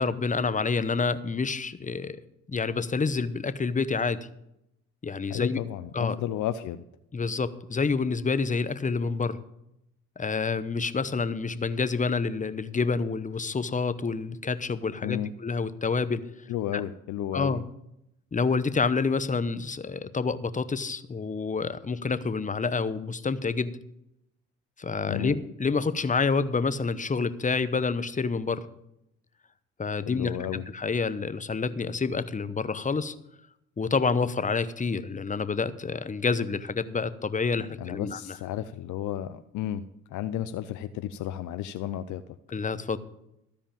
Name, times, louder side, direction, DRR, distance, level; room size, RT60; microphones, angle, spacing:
voice 1, 0.0-2.2 2.5-4.2 5.0-5.6 5.9-6.2 7.1-9.4 10.2-16.2 16.7-16.8 17.3-17.6 18.3-23.7 24.8-28.6 29.8-33.1 33.8-38.4 42.5-43.0, left 4 dB, 25° left, 15 dB, 0.9 m, -28 dB
voice 2, 5.3-6.8 15.0-15.3 16.5-17.6 25.1-25.4 30.1-30.7 37.8-42.4, left 11 dB, 65° left, 12 dB, 0.6 m, -33 dB
13.0 x 5.1 x 8.7 m, 0.82 s
hypercardioid pair, 55°, 33 cm